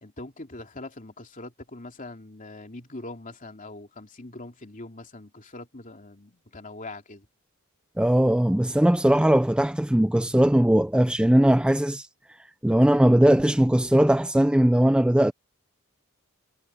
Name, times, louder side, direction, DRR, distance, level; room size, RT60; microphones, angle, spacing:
voice 1, 0.0-7.3, left 2 dB, 35° left, 3.1 m, -42 dB
voice 2, 8.0-12.1 12.6-15.3, right 1 dB, 5° right, 0.4 m, -19 dB
head